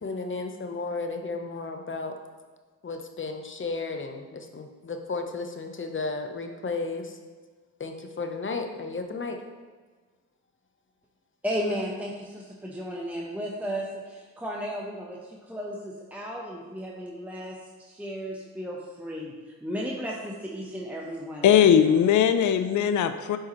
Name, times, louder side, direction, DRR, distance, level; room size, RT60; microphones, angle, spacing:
voice 1, 0.0-2.1 2.8-7.2 7.8-9.4, left 3 dB, 35° left, 5 dB, 0.9 m, -33 dB
voice 2, 11.4-19.3 19.6-21.8, equal, 5° right, -3 dB, 0.9 m, -34 dB
voice 3, 21.4-23.4, left 9 dB, 55° left, 10 dB, 0.5 m, -19 dB
7.2 x 4.7 x 3.1 m, 1.4 s
supercardioid pair, 50°, 36 cm